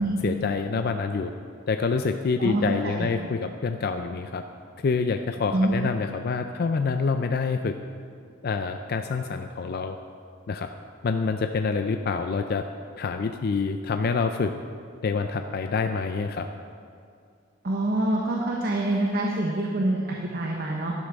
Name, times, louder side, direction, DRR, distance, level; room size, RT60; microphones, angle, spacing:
voice 1, 0.2-1.3 1.7-4.4 4.8-7.7 8.4-10.0 10.5-10.7 11.0-12.7 13.0-14.5 15.0-16.5, left 4 dB, 50° left, 7 dB, 0.4 m, -27 dB
voice 2, 2.4-3.1 5.5-5.7 17.6-20.9, right 1 dB, 50° right, -1 dB, 1.0 m, -26 dB
11.5 x 11.5 x 3.6 m, 2.3 s
head